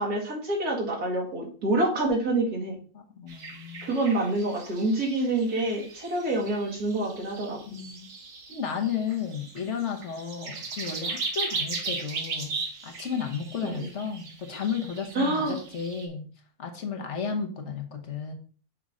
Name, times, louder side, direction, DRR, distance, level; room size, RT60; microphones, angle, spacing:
voice 1, 0.0-2.8 3.8-7.6 13.6-13.9 15.2-15.5, right 2 dB, 90° right, -3 dB, 2.7 m, -27 dB
voice 2, 2.9-3.9 7.7-8.1 8.5-12.5 12.8-16.3 16.6-18.3, left 6 dB, 55° left, 3 dB, 1.3 m, -33 dB
sound 1, 3.3-16.1, right 4 dB, 65° right, 1.6 m, -37 dB
6.2 x 5.4 x 3.7 m, 0.41 s
omnidirectional pair, 1.6 m